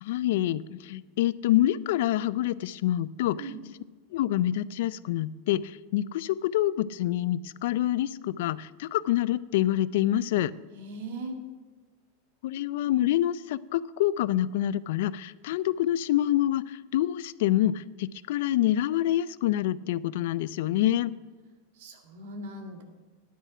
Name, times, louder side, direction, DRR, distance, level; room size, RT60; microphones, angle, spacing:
voice 1, 0.0-3.5 4.1-10.5 12.4-21.1, left 13 dB, 65° left, 18 dB, 0.3 m, -26 dB
voice 2, 10.7-11.4 21.7-22.8, right 2 dB, 65° right, 4 dB, 1.9 m, -39 dB
10.0 x 8.9 x 5.9 m, 1.4 s
supercardioid pair, 155°, 0 cm